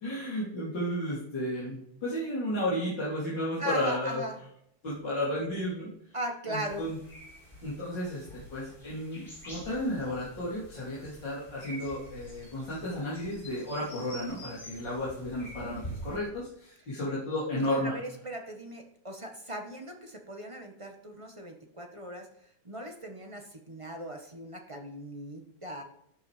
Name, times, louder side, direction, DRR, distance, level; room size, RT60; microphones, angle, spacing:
voice 1, 0.0-4.2 4.8-5.9 6.5-7.0 7.6-17.9, left 1 dB, 55° left, -8 dB, 4.1 m, -33 dB
voice 2, 3.6-4.4 6.1-6.9 17.6-22.3 22.6-25.8, right 1 dB, 15° right, 3 dB, 1.3 m, -39 dB
sound 1, 6.6-16.2, right 1 dB, 20° left, 5.2 m, -47 dB
12.0 x 12.0 x 5.1 m, 0.71 s
omnidirectional pair, 2.4 m